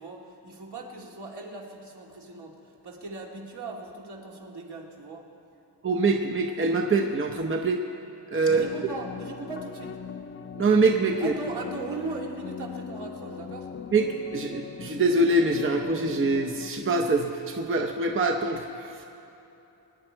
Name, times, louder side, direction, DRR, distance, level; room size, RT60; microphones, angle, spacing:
voice 1, 0.0-5.3 8.4-10.0 11.2-13.7, right 3 dB, 70° right, -1 dB, 2.3 m, -38 dB
voice 2, 5.8-7.8 8.3-8.6 10.5-11.3 13.9-14.1 14.3-19.0, right 3 dB, 30° right, 3 dB, 0.7 m, -24 dB
sound 1, 8.5-16.7, left 6 dB, 30° left, 0.4 m, -40 dB
24.5 x 9.8 x 4.5 m, 3.0 s
wide cardioid pair, 155°, 42 cm